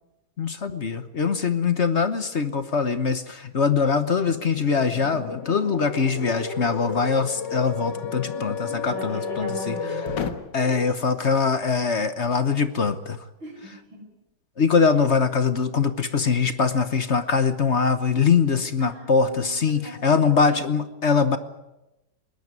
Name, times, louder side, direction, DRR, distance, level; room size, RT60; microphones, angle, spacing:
voice 1, 0.4-9.8 10.5-13.2 14.6-21.4, left 5 dB, 40° left, 11 dB, 1.1 m, -22 dB
sound 1, 4.2-10.3, left 5 dB, 65° left, 2.1 m, -32 dB
voice 2, 8.9-10.8 13.4-14.0 14.8-15.0 18.8-20.8, right 2 dB, 85° right, 1 dB, 8.3 m, -40 dB
21.5 x 18.5 x 9.6 m, 0.98 s
omnidirectional pair, 2.1 m